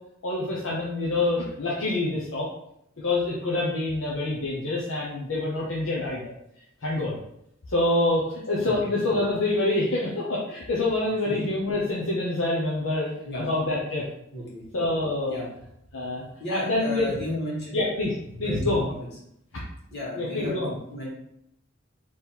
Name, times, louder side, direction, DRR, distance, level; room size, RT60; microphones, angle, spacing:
voice 1, 0.2-2.5 3.0-6.3 6.8-7.2 7.7-13.1 13.4-14.0 14.7-15.3 15.9-17.1 17.7-18.9 20.2-20.8, left 2 dB, 75° left, -5 dB, 0.9 m, -26 dB
voice 2, 16.4-17.8 18.4-19.1 19.9-20.6 20.9-21.1, left 1 dB, 55° left, -5 dB, 1.8 m, -32 dB
3.6 x 3.2 x 4.4 m, 0.77 s
head